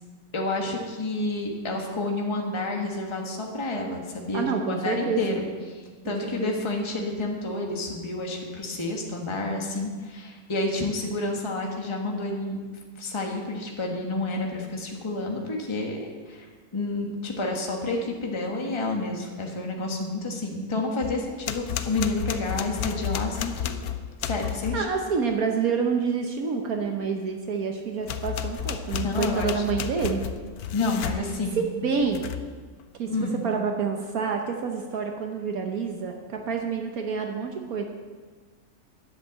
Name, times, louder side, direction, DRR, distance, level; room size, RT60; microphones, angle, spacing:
voice 1, 0.3-12.6 13.0-23.7 24.2-24.8 28.9-29.5 30.7-31.7 33.1-33.4, left 2 dB, 20° left, 0 dB, 1.4 m, -29 dB
voice 2, 4.3-5.2 6.0-6.1 6.4-6.5 24.7-30.2 31.6-32.3 33.0-33.1 33.4-37.8, right 5 dB, 70° right, 3 dB, 1.4 m, -28 dB
sound 1, 21.0-24.9 28.0-31.2 32.0-32.5, left 10 dB, 80° left, 1.2 m, -32 dB
10.5 x 7.9 x 7.5 m, 1.5 s
omnidirectional pair, 1.6 m